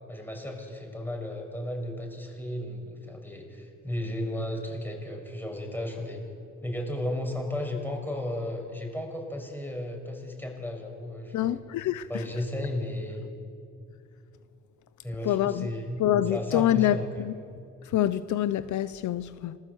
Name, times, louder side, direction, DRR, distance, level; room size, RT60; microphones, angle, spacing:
voice 1, 0.1-6.2 6.6-11.6 12.1-13.3 15.0-17.3, left 1 dB, 5° left, 6.0 m, -34 dB
voice 2, 11.3-12.1 15.2-15.7 16.0-17.3 17.9-19.6, left 12 dB, 75° left, 0.7 m, -26 dB
27.0 x 19.5 x 8.1 m
cardioid pair, 90°, 30 cm